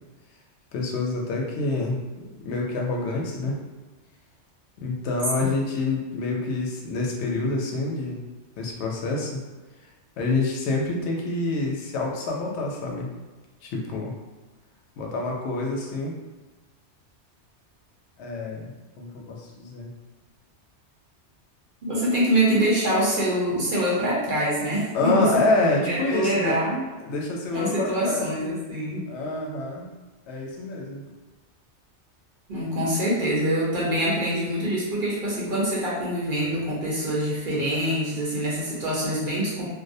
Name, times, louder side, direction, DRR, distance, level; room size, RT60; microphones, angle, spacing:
voice 1, 0.7-3.6 4.8-8.2 8.6-9.4 10.2-13.1 13.6-14.1 15.0-16.1 18.2-18.7 19.0-19.9 24.9-26.6 27.0-28.3 29.1-29.9 30.3-31.1, left 3 dB, 75° left, -1 dB, 0.8 m, -27 dB
voice 2, 21.8-25.3 25.8-26.8 27.5-29.1 32.5-39.7, right 1 dB, 55° right, -7 dB, 0.8 m, -25 dB
2.4 x 2.0 x 2.6 m, 1.3 s
omnidirectional pair, 1.2 m